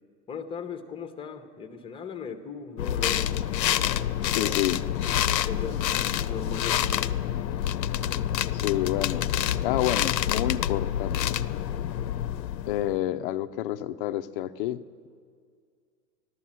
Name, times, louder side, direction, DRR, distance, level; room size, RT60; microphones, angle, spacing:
voice 1, 0.3-4.6 5.4-5.8 6.1-7.1, left 5 dB, 10° left, 6 dB, 0.8 m, -38 dB
sound 1, 2.8-13.0, left 11 dB, 90° left, 0.6 m, -27 dB
voice 2, 4.3-4.8 8.5-9.2 9.6-11.4 12.7-15.1, left 13 dB, 35° left, 11 dB, 0.5 m, -29 dB
15.5 x 12.0 x 7.4 m, 2.2 s
hypercardioid pair, 125°, 49 cm